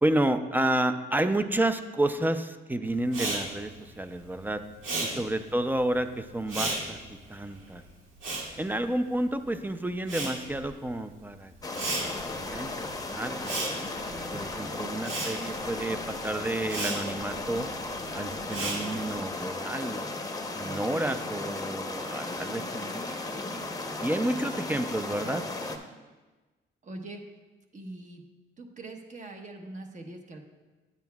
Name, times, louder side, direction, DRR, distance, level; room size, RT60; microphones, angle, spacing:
voice 1, 0.0-4.6 5.0-7.0 7.3-7.8 8.6-13.6 14.3-17.7 18.1-20.0 20.6-23.6 24.0-25.5, right 1 dB, 10° right, 9 dB, 0.5 m, -30 dB
Respiratory sounds, 3.1-9.5 9.8-19.3, right 2 dB, 85° right, 1.8 m, -36 dB
sound 1, 11.6-25.8, left 2 dB, 20° left, 0.8 m, -35 dB
voice 2, 14.0-14.4 20.5-20.8 25.9-26.0 26.8-27.2 27.7-28.2 28.6-30.4, right 2 dB, 40° right, 4 dB, 1.1 m, -43 dB
9.5 x 9.0 x 2.3 m, 1.2 s
cardioid pair, 90°, 20 cm